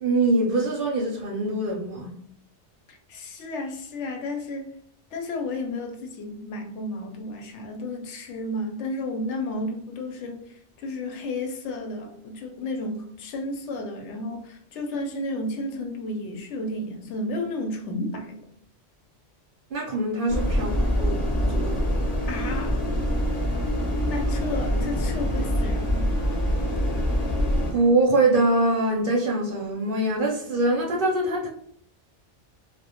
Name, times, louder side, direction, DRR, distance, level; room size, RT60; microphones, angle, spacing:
voice 1, 0.0-2.1 19.7-21.8 27.7-31.5, right 2 dB, 60° right, 0.6 m, -23 dB
voice 2, 2.9-4.7 5.1-18.4 22.3-22.8 24.1-26.1, left 2 dB, 80° left, 0.9 m, -32 dB
sound 1, 20.3-27.7, equal, 40° left, 0.7 m, -25 dB
2.1 x 2.1 x 2.8 m
omnidirectional pair, 1.2 m